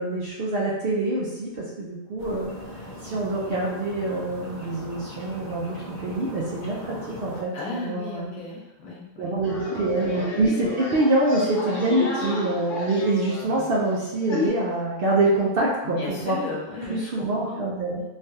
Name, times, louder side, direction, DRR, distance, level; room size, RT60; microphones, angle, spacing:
voice 1, 0.0-2.5 3.0-8.3 9.2-16.4 16.9-18.0, right 2 dB, 60° right, -4 dB, 0.7 m, -25 dB
sound 1, 2.2-7.4, left 1 dB, 65° left, 0.4 m, -39 dB
voice 2, 7.5-9.4 15.8-17.6 17.9-18.0, left 3 dB, 85° left, -4 dB, 1.3 m, -35 dB
sound 2, 9.4-14.5, left 3 dB, 45° left, 0.8 m, -31 dB
3.3 x 2.3 x 2.7 m, 1.0 s
omnidirectional pair, 1.4 m